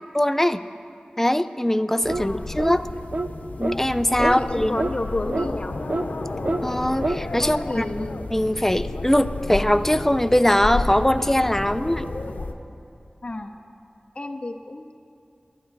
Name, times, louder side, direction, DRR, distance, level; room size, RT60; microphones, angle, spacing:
voice 1, 0.1-0.6 1.2-2.9 3.6-4.8 6.6-7.8 8.3-12.1, left 1 dB, 10° left, 11 dB, 0.5 m, -21 dB
sound 1, 2.0-12.5, left 2 dB, 85° left, 0.8 m, -32 dB
sound 2, 2.1-2.3 2.6-2.8 3.1-3.3 3.6-3.8 4.2-4.4 4.8-4.9 5.3-5.5 5.9-6.1 6.4-6.6 7.0-7.2, right 2 dB, 50° right, 0.4 m, -26 dB
voice 2, 2.2-2.5 4.2-5.8 7.4-8.2 13.2-13.5 14.1-14.9, left 2 dB, 45° left, 5 dB, 0.8 m, -31 dB
21.5 x 10.5 x 4.1 m, 2.5 s
wide cardioid pair, 45°, 3 cm